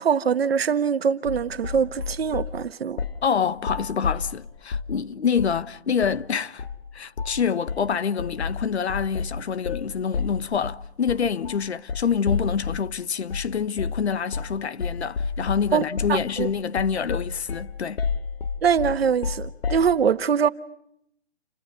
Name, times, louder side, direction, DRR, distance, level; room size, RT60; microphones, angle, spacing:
voice 1, 0.0-3.0 15.7-15.8 16.1-16.5 18.6-20.5, right 7 dB, 65° right, 1.4 m, -23 dB
sound 1, 1.3-2.6 3.0-3.3 3.6-5.0 5.4-5.6 6.0-6.2 6.6-6.8 7.2-7.4 7.7-12.9 13.3-13.5 13.8-14.1 14.3-14.6 14.8-19.9, left 5 dB, 60° left, 1.9 m, -30 dB
voice 2, 3.2-6.6 6.9-18.0, left 7 dB, 85° left, 1.3 m, -26 dB
30.0 x 29.5 x 5.2 m
hypercardioid pair, 170°, 32 cm